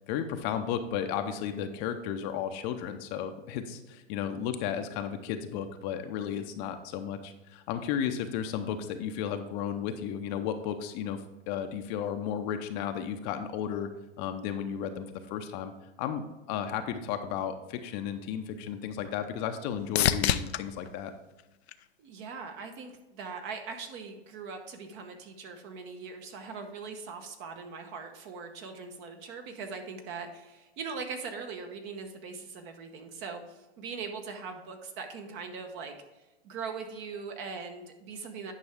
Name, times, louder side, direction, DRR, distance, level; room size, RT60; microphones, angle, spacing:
voice 1, 0.1-11.2 11.5-13.9 14.2-15.7 16.0-21.1, left 8 dB, 40° left, 7 dB, 0.7 m, -34 dB
sound 1, 18.2-22.4 22.9-23.6 31.4-31.5, left 10 dB, 80° left, 0.6 m, -33 dB
voice 2, 22.0-36.0 36.4-38.5, right 5 dB, 40° right, 5 dB, 1.0 m, -41 dB
9.8 x 5.4 x 3.5 m, 1.1 s
hypercardioid pair, 120°, 31 cm